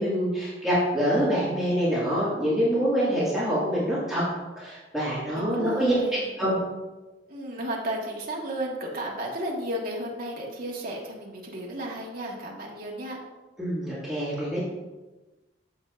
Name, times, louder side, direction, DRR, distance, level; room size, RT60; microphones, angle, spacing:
voice 1, 0.0-4.2 4.6-6.6 13.6-14.7, equal, ahead, -10 dB, 2.1 m, -25 dB
voice 2, 5.4-6.1 7.3-13.2, right 1 dB, 55° right, -2 dB, 1.5 m, -33 dB
7.9 x 7.0 x 2.5 m, 1.2 s
head